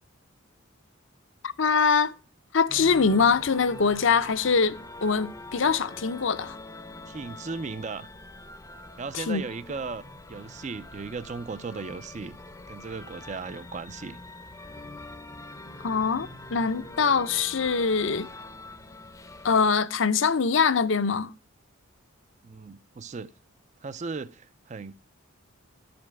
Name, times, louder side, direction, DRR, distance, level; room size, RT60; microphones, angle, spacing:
voice 1, 1.4-2.1 2.5-6.6 9.1-9.4 15.8-18.3 19.4-21.3, left 5 dB, 65° left, 0.6 m, -23 dB
sound 1, 2.7-19.7, left 2 dB, 15° left, 0.6 m, -44 dB
voice 2, 7.1-8.1 9.0-10.0 10.3-12.4 12.7-14.2 22.4-23.3 23.8-24.9, right 4 dB, 35° right, 0.4 m, -36 dB
12.5 x 5.2 x 5.8 m
head